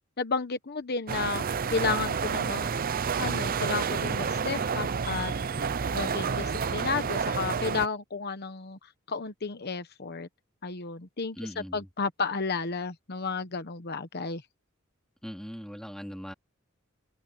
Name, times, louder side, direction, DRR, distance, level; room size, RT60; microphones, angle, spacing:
voice 1, 0.2-1.4 1.7-2.7 3.2-5.3 5.9-8.8 9.1-10.3 10.6-14.4, left 4 dB, 50° left, 1.1 m, -32 dB
sound 1, 1.1-7.9, right 6 dB, 45° right, 0.6 m, -29 dB
voice 2, 11.4-11.9 15.2-16.3, equal, 5° left, 2.8 m, -40 dB
open air
head